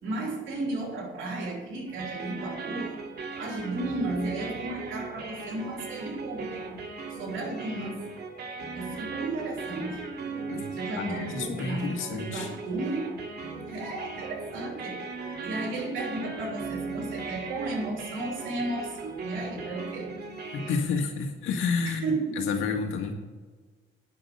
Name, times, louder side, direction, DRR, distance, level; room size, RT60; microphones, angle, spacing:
voice 1, 0.0-2.9 3.4-6.6 7.2-8.0 8.7-10.0 10.7-13.1 13.7-15.1 15.4-20.2 21.9-22.5, right 2 dB, 80° right, 1 dB, 3.2 m, -34 dB
sound 1, 1.9-20.8, right 4 dB, 55° right, 2.2 m, -38 dB
voice 2, 10.5-12.5 20.5-22.1 22.4-23.1, left 5 dB, 85° left, 3 dB, 2.0 m, -30 dB
10.0 x 6.2 x 8.4 m, 1.4 s
cardioid pair, 90°, 20 cm